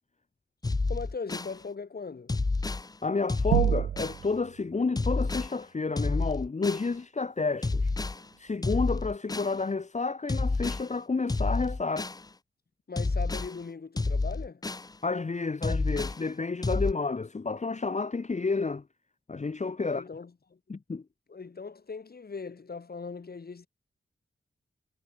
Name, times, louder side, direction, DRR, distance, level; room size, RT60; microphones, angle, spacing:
sound 1, 0.6-1.5 2.3-2.9 3.3-4.2 5.0-5.5 6.0-6.9 7.6-8.2 8.6-9.5 10.3-10.9 11.3-12.2 13.0-13.5 14.0-14.9 15.6-16.2 16.6-16.9, left 3 dB, 20° left, 0.5 m, -29 dB
voice 1, 0.9-2.3 12.9-14.6 19.8-20.6 21.3-23.7, left 4 dB, 55° left, 5.2 m, -39 dB
voice 2, 3.0-7.9 8.4-12.1 15.0-18.8 19.3-20.0 20.7-21.0, left 4 dB, 40° left, 1.4 m, -30 dB
sound 2, 3.5-4.5, right 10 dB, 80° right, 0.5 m, -25 dB
wide cardioid pair, 90°, 19 cm